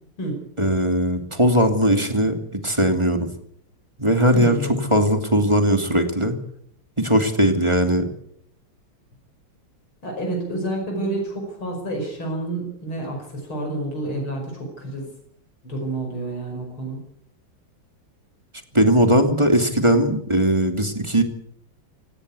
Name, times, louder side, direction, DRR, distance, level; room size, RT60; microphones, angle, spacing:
voice 1, 0.6-3.3 4.0-4.6 4.9-6.4 7.0-8.1 18.7-21.2, right 1 dB, 15° right, 6 dB, 2.6 m, -19 dB
voice 2, 4.3-4.9 10.0-15.1 15.6-17.0, right 1 dB, 90° left, 2 dB, 6.3 m, -29 dB
18.0 x 18.0 x 8.4 m, 0.68 s
omnidirectional pair, 2.2 m